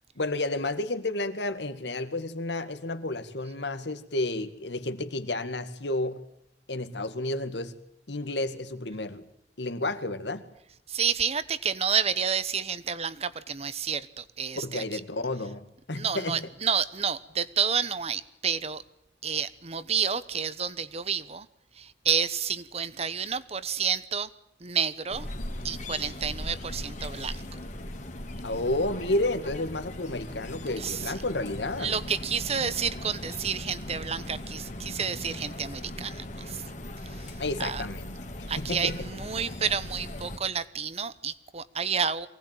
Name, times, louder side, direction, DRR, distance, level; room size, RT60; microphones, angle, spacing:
voice 1, 0.2-6.2 6.7-7.8 8.1-9.3 9.6-10.5 14.6-16.5 28.4-32.0 37.4-38.2 38.6-39.1, left 2 dB, 80° left, 10 dB, 2.1 m, -31 dB
voice 2, 10.9-15.0 15.9-18.8 19.2-21.5 21.8-24.3 24.6-25.3 25.6-27.4 30.8-31.1 31.8-36.6 37.1-37.8 38.5-42.3, right 7 dB, 35° right, 15 dB, 1.1 m, -30 dB
sound 1, 25.1-40.4, left 1 dB, 45° left, 2.6 m, -39 dB
24.0 x 18.5 x 9.1 m, 0.82 s
head